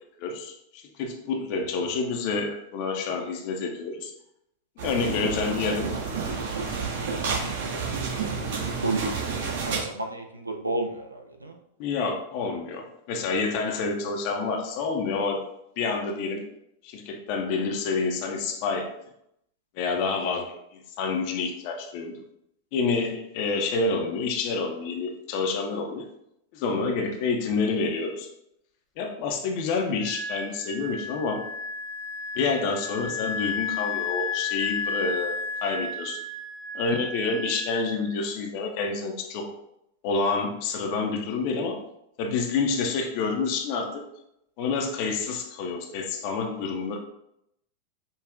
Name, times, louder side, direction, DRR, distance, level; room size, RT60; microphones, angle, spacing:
voice 1, 0.2-4.1 4.8-5.9 11.8-15.4 15.8-16.4 16.8-18.9 19.8-22.2 22.7-26.1 26.5-28.3 29.0-31.4 32.4-36.2 36.7-39.5 40.0-41.8 42.2-44.1 44.6-47.0, left 4 dB, 45° left, 3 dB, 0.5 m, -28 dB
sound 1, 4.8-9.8, right 5 dB, 55° right, 1.4 m, -30 dB
voice 2, 6.8-8.5 8.8-9.0 9.6-11.6, right 2 dB, 80° right, 3 dB, 0.4 m, -33 dB
Wind instrument woodwind instrument, 30.0-38.3, left 4 dB, ahead, 0.6 m, -33 dB
5.1 x 2.3 x 2.4 m, 0.79 s
figure-of-eight pair, 90°, 0 cm